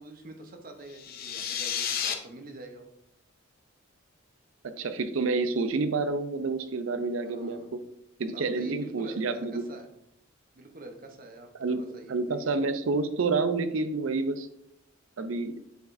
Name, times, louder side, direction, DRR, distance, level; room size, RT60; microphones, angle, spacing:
voice 1, 0.0-2.9 7.2-7.7 8.3-9.9 10.5-12.7, right 2 dB, 45° right, 4 dB, 0.8 m, -46 dB
sound 1, 0.9-2.1, left 8 dB, 45° left, 0.6 m, -31 dB
voice 2, 4.8-7.6 8.2-9.6 11.6-11.8 12.1-14.5 15.2-15.5, right 3 dB, 75° right, 10 dB, 0.5 m, -28 dB
7.9 x 4.8 x 2.6 m, 0.78 s
head